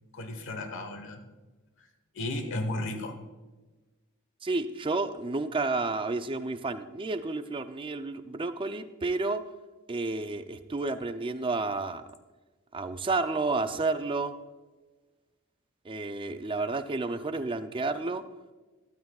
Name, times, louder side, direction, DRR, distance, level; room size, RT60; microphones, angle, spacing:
voice 1, 0.1-1.2 2.1-3.1, left 1 dB, 60° left, 7 dB, 1.2 m, -34 dB
voice 2, 4.4-9.4 9.9-12.0 12.7-14.3 15.8-18.2, right 3 dB, 25° right, 9 dB, 0.5 m, -31 dB
13.0 x 12.5 x 2.4 m, 1.2 s
head